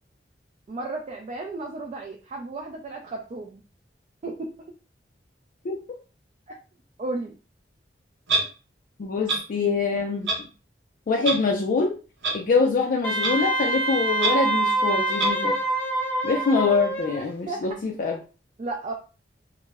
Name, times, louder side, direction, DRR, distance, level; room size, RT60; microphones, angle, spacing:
voice 1, 0.7-3.6 4.2-4.5 6.5-6.6 7.0-7.3 17.5-17.7 18.6-18.9, right 2 dB, 40° right, 1 dB, 0.3 m, -33 dB
Clock, 8.3-8.4 9.3-9.4 10.3-10.4 11.2-11.3 12.2-12.3 13.2-13.3 14.2-14.3 15.2-15.3, right 3 dB, 70° right, 0.7 m, -23 dB
voice 2, 9.0-10.3 11.1-11.9 12.3-15.5 16.2-18.2, left 4 dB, 50° left, 0 dB, 0.3 m, -24 dB
Wind instrument woodwind instrument, 13.0-17.2, right 2 dB, 10° left, 0.7 m, -25 dB
2.1 x 2.0 x 3.3 m, 0.34 s
head